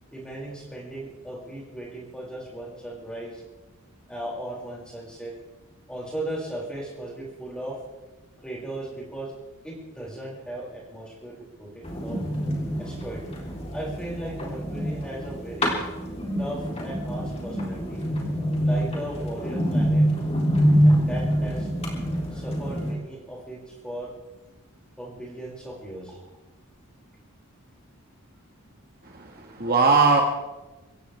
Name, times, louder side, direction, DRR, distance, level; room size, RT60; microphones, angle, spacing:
voice 1, 0.1-3.4 4.1-5.3 5.9-7.8 8.4-9.3 9.6-12.2 12.8-13.2 13.7-15.8 16.4-18.1 18.6-20.1 20.8-21.7 22.3-24.1 25.0-26.2, right 1 dB, 5° left, -4 dB, 5.9 m, -37 dB
sound 1, 11.8-22.9, equal, 25° left, 3.5 m, -25 dB
voice 2, 29.0-30.2, right 4 dB, 45° right, 1 dB, 1.7 m, -20 dB
25.5 x 15.5 x 3.5 m, 1.1 s
head